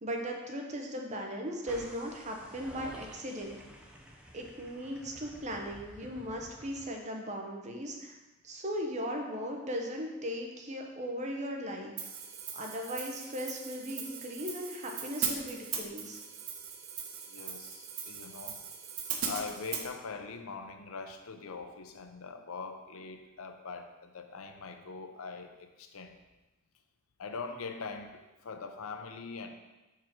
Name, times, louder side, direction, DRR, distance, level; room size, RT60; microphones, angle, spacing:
voice 1, 0.0-3.6 4.3-8.1 8.4-11.9 12.5-16.2, equal, 35° right, 1 dB, 0.9 m, -38 dB
sound 1, 1.7-6.9, equal, 5° right, 0.6 m, -51 dB
Hi-hat, 12.0-19.9, right 7 dB, 90° right, 0.8 m, -39 dB
voice 2, 17.3-18.6 19.2-26.1 27.2-29.5, left 4 dB, 85° left, 6 dB, 0.6 m, -42 dB
4.6 x 4.6 x 6.0 m, 1.1 s
head